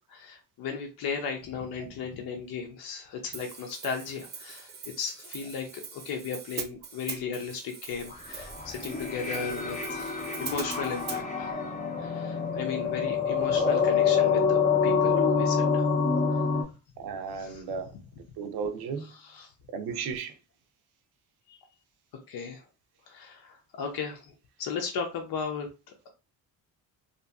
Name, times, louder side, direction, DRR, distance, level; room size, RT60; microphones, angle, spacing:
voice 1, 0.1-4.7 5.0-11.5 12.0-15.9 16.3-16.6 17.3-17.6 19.1-19.5 21.5-21.6 22.3-22.6 23.1-24.3 24.6-26.1, left 6 dB, 70° left, 0.6 m, -36 dB
Hi-hat, 3.3-11.2, right 6 dB, 30° right, 0.3 m, -42 dB
sound 1, 8.1-16.6, left 5 dB, 20° left, 0.5 m, -26 dB
voice 2, 17.0-17.9 18.4-19.0 19.7-20.3, right 6 dB, 75° right, 0.6 m, -34 dB
2.7 x 2.4 x 2.2 m
cardioid pair, 105°, 39 cm